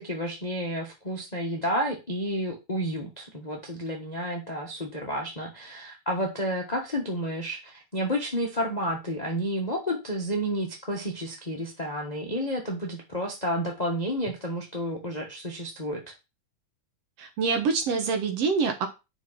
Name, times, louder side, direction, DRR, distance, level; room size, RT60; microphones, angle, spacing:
voice 1, 0.0-16.1, equal, 60° left, 1 dB, 0.4 m, -31 dB
voice 2, 17.2-18.9, right 5 dB, 60° right, 5 dB, 2.3 m, -25 dB
5.4 x 5.2 x 5.6 m, 0.26 s
omnidirectional pair, 3.4 m